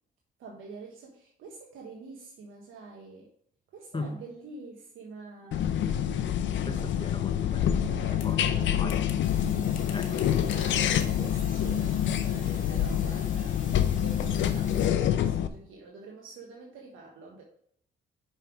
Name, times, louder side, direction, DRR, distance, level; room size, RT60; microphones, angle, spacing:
voice 1, 0.4-3.3 3.7-5.6 7.7-8.7 9.9-13.6 13.9-17.4, right 4 dB, 85° right, 1.3 m, -46 dB
sound 1, 5.5-15.5, left 10 dB, 70° left, 0.6 m, -27 dB
voice 2, 6.7-7.9 8.1-9.0 9.9-10.7, left 3 dB, 25° left, 0.9 m, -38 dB
sound 2, 8.2-9.5 9.7-10.7 11.0-11.2 11.9-12.1, left 7 dB, 85° left, 1.1 m, -49 dB
sound 3, 9.2-14.9, left 3 dB, 40° left, 2.6 m, -47 dB
5.7 x 5.6 x 4.7 m
cardioid pair, 90°, 20 cm